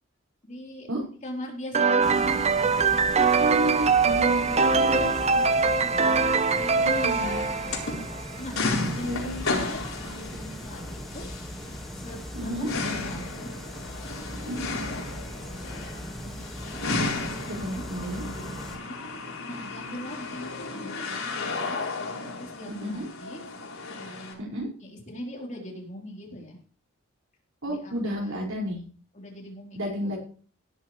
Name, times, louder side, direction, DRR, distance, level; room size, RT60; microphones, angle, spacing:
voice 1, 0.4-0.9 1.2-3.0 4.1-8.0 8.4-8.6 8.9-9.2 9.5-11.3 11.9-14.2 14.9-21.9 22.3-23.4 24.0-24.4 24.8-26.6 27.7-28.4 29.1-30.2, left 1 dB, 35° left, 0 dB, 4.0 m, -42 dB
sound 1, 1.7-8.4, right 4 dB, 30° right, 0.6 m, -23 dB
sound 2, 2.0-18.8, equal, ahead, 1.9 m, -39 dB
voice 2, 3.4-4.5 4.8-5.1 6.8-7.4 9.1-9.4 12.3-12.7 14.3-14.6 17.4-18.2 22.8-23.1 24.4-24.7 27.6-28.8 29.8-30.2, equal, 80° right, -1 dB, 5.6 m, -31 dB
sound 3, 6.9-24.3, left 3 dB, 85° left, 4.5 m, -34 dB
17.5 x 10.5 x 3.3 m, 0.42 s
head